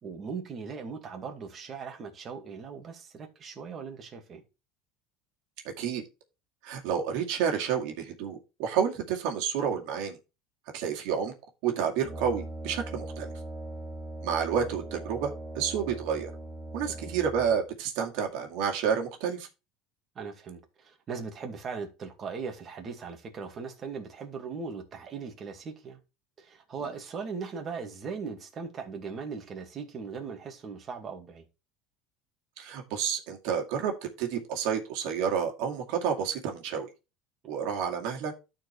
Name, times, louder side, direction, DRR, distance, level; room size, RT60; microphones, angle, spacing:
voice 1, 0.0-4.4 16.8-17.1 20.2-26.0 26.4-31.4, right 5 dB, 35° right, 2.2 m, -39 dB
voice 2, 6.6-10.2 10.7-11.3 11.6-13.3 14.2-16.3 16.7-19.5 32.6-36.9 37.5-38.3, right 7 dB, 75° right, 2.2 m, -30 dB
Brass instrument, 12.0-17.7, right 1 dB, ahead, 3.6 m, -40 dB
13.0 x 4.6 x 3.4 m
supercardioid pair, 130°, 0 cm